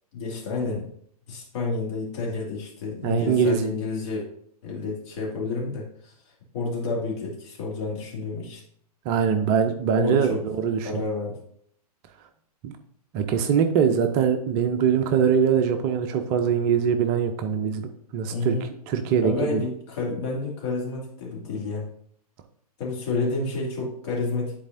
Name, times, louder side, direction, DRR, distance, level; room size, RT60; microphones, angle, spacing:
voice 1, 0.1-0.9 1.3-4.2 4.6-6.1 6.5-8.6 9.9-10.4 10.8-11.4 18.3-18.7 19.2-21.9 22.8-24.6, left 3 dB, 45° left, -3 dB, 2.3 m, -29 dB
voice 2, 3.0-3.7 9.1-10.9 12.6-12.7 13.1-18.5 18.9-19.6, right 7 dB, 25° right, 7 dB, 0.5 m, -23 dB
10.0 x 4.2 x 2.6 m, 0.65 s
figure-of-eight pair, 110°, 20 cm